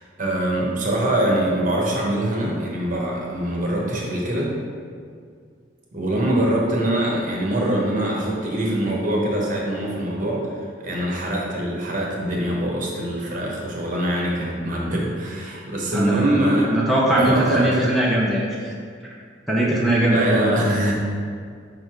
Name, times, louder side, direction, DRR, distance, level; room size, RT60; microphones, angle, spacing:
voice 1, 0.0-4.5 5.9-16.8 17.2-17.9 20.1-20.9, right 1 dB, 50° right, -3 dB, 1.2 m, -23 dB
voice 2, 15.9-16.4 16.7-18.7 19.5-20.5, right 1 dB, ahead, -5 dB, 0.7 m, -20 dB
5.2 x 4.1 x 4.6 m, 2.1 s
head